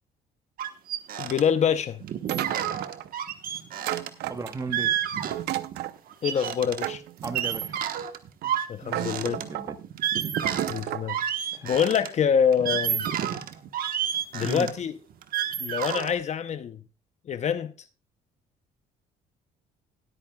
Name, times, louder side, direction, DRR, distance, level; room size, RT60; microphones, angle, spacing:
sound 1, 0.6-1.4 1.7-1.8 2.0-5.8 6.1-12.1 12.5-16.1, right 10 dB, 60° right, 1.2 m, -30 dB
voice 1, 1.2-2.0 6.2-7.0 8.7-9.4 10.7-11.2 11.6-13.1 14.3-14.9 15.6-16.8 17.3-17.7, left 7 dB, 40° left, 0.7 m, -25 dB
sound 2, 2.3-3.1 3.8-4.8 5.3-6.0 6.8-7.7 8.4-8.5 8.9-9.8 10.4-11.1, right 14 dB, 75° right, 0.7 m, -33 dB
voice 2, 4.3-4.9 7.2-7.8 8.8-9.8 11.5-11.8 13.2-13.4 14.4-14.7, right 3 dB, 20° right, 1.1 m, -36 dB
20.0 x 8.7 x 2.3 m
cardioid pair, 110°, 17 cm